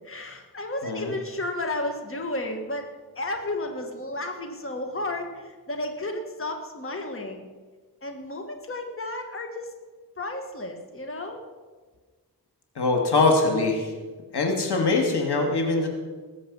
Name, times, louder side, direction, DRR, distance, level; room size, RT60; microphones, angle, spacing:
voice 1, 0.0-7.5 8.0-9.7 10.2-11.4, left 2 dB, 35° left, 4 dB, 1.5 m, -33 dB
voice 2, 12.8-13.9 14.3-15.9, left 3 dB, 90° left, 2 dB, 2.3 m, -22 dB
19.5 x 7.7 x 5.5 m, 1.4 s
wide cardioid pair, 90°, 39 cm